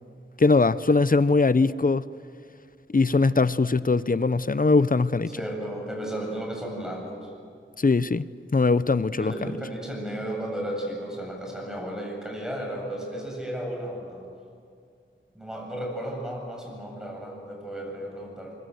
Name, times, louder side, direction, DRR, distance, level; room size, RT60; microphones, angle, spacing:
voice 1, 0.4-2.0 2.9-5.3 7.8-8.3 8.5-9.3, left 3 dB, 45° left, 0.7 m, -21 dB
voice 2, 5.4-7.3 9.1-14.2 15.3-18.6, right 1 dB, 5° right, 7.7 m, -34 dB
24.0 x 23.5 x 7.9 m
wide cardioid pair, 65°, 20 cm